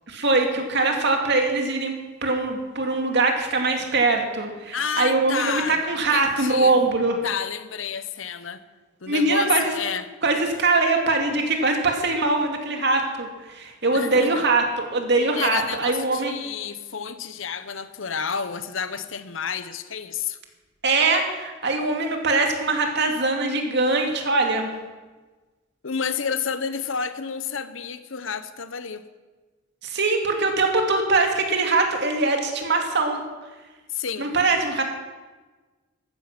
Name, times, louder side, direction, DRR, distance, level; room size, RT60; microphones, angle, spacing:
voice 1, 0.1-1.9 2.2-7.2 9.1-9.7 10.2-16.3 20.8-24.7 29.8-33.2 34.2-34.8, right 3 dB, 55° right, 3 dB, 2.4 m, -22 dB
voice 2, 4.7-5.8 6.1-6.8 7.2-8.6 9.0-10.1 13.9-14.5 15.4-20.4 25.8-29.0 33.9-34.3, left 6 dB, 70° left, 12 dB, 1.0 m, -30 dB
14.5 x 14.0 x 6.1 m, 1.3 s
head